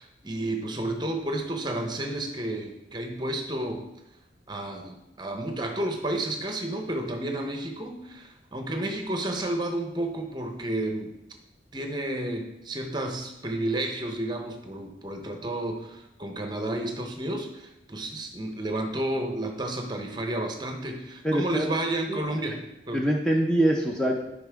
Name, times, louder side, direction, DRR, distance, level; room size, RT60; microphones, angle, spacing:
voice 1, 0.0-3.8 4.5-11.1 11.7-22.6 22.9-23.1, right 1 dB, 25° right, 4 dB, 0.8 m, -31 dB
voice 2, 21.2-21.7 22.9-24.2, right 1 dB, 5° left, -1 dB, 0.5 m, -23 dB
8.5 x 5.2 x 3.4 m, 0.93 s
head